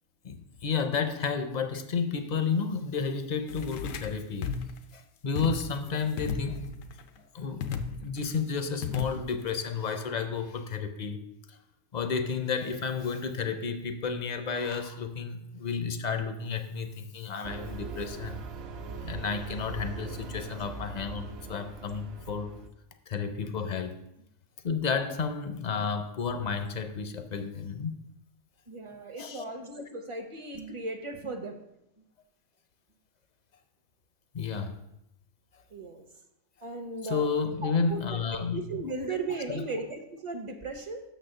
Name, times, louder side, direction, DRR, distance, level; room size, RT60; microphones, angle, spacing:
voice 1, 0.2-4.5 4.9-6.7 7.3-7.6 8.0-11.2 11.5-11.6 11.9-18.4 19.0-22.5 23.1-24.0 24.6-28.0 29.2-29.4 34.3-34.8 37.0-38.6 39.5-39.6, left 5 dB, 50° left, 8 dB, 0.5 m, -31 dB
sound 1, 3.5-4.1 4.4-4.8 5.4-5.9 6.2-7.0 7.6-8.2 8.8-9.5, left 5 dB, 85° left, 1.0 m, -34 dB
sound 2, 17.4-22.7, right 5 dB, 60° right, 0.8 m, -41 dB
voice 2, 28.7-31.6 35.7-36.0 36.6-37.3 37.6-38.0 38.3-41.0, right 3 dB, 35° right, 6 dB, 0.6 m, -36 dB
6.5 x 4.1 x 6.5 m, 0.85 s
omnidirectional pair, 1.3 m